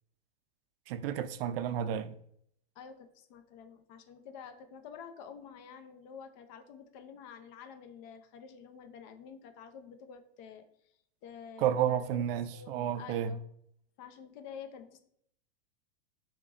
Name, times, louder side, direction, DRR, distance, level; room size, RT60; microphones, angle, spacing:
voice 1, 0.9-2.2 11.6-13.4, right 9 dB, 60° right, 0.4 m, -31 dB
voice 2, 2.8-10.7 11.2-13.4 14.0-15.0, left 7 dB, 45° left, 0.6 m, -49 dB
6.4 x 3.0 x 2.5 m
supercardioid pair, 150°, 32 cm